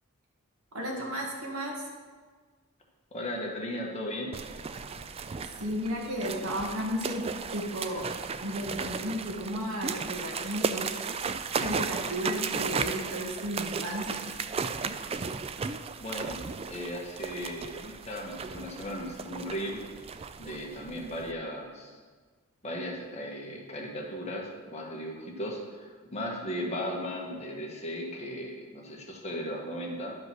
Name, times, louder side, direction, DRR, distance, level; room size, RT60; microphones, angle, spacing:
voice 1, 0.7-1.8 5.6-7.3 7.5-8.0 8.4-10.9 11.5-14.4 23.8-23.9, equal, 85° right, 0 dB, 2.0 m, -34 dB
voice 2, 3.1-4.3 16.0-16.4 16.7-19.8 20.4-22.0 22.6-30.1, equal, 30° left, -1 dB, 1.5 m, -36 dB
sound 1, 4.3-21.3, right 5 dB, 25° right, 0.3 m, -35 dB
11.0 x 5.2 x 6.1 m, 1.5 s
head